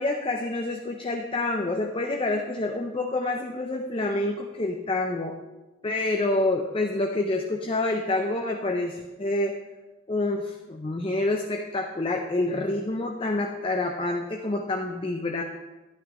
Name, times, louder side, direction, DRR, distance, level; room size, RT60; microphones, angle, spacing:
voice 1, 0.0-5.4 5.8-9.5 10.1-15.4, left 2 dB, 25° left, 2 dB, 0.5 m, -27 dB
11.5 x 9.2 x 3.0 m, 1.1 s
head